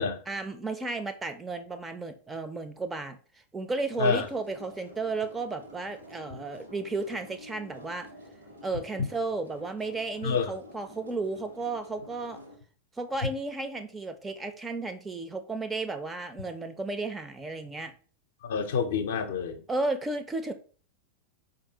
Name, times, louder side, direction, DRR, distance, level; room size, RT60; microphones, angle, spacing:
voice 1, 0.3-3.2 3.5-8.1 8.6-12.4 13.0-17.9 19.7-20.5, right 3 dB, 15° right, 0.4 m, -33 dB
sound 1, 3.9-12.6, left 1 dB, 85° right, 1.2 m, -50 dB
voice 2, 10.2-10.5 18.4-19.6, left 6 dB, 60° left, 0.5 m, -28 dB
4.7 x 2.6 x 2.8 m
figure-of-eight pair, 90°, 0 cm